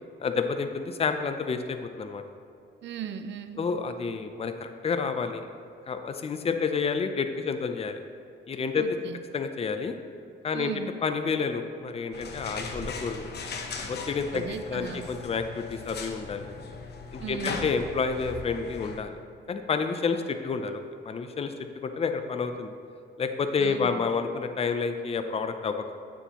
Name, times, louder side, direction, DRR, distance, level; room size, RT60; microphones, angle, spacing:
voice 1, 0.2-2.2 3.6-5.5 5.9-8.0 8.5-8.9 9.3-9.9 10.4-10.7 11.0-13.3 13.8-16.5 17.1-19.2 19.5-21.5 21.8-22.7 23.2-26.0, left 5 dB, 30° left, 7 dB, 0.6 m, -29 dB
voice 2, 2.8-3.7 8.8-9.2 10.5-10.9 14.3-15.1 17.2-17.7 23.6-24.0, right 8 dB, 65° right, 9 dB, 0.6 m, -37 dB
sound 1, 12.1-19.0, left 4 dB, 55° left, 0.9 m, -38 dB
8.8 x 7.0 x 3.0 m, 2.5 s
cardioid pair, 90°, 20 cm